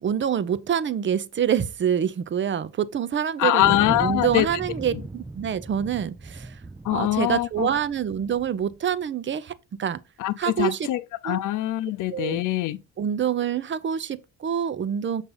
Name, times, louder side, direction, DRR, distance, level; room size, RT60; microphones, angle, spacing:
voice 1, 0.0-6.6 6.9-10.0 10.4-10.9 11.2-11.4 12.1-12.4 13.0-15.2, right 8 dB, 40° right, 0.7 m, -26 dB
voice 2, 3.4-4.5 4.9-5.0 6.8-7.7 10.2-12.8, left 15 dB, 85° left, 0.7 m, -23 dB
Thunder, 3.6-8.8, right 2 dB, 10° right, 0.4 m, -37 dB
7.2 x 5.5 x 3.9 m
cardioid pair, 90°, 30 cm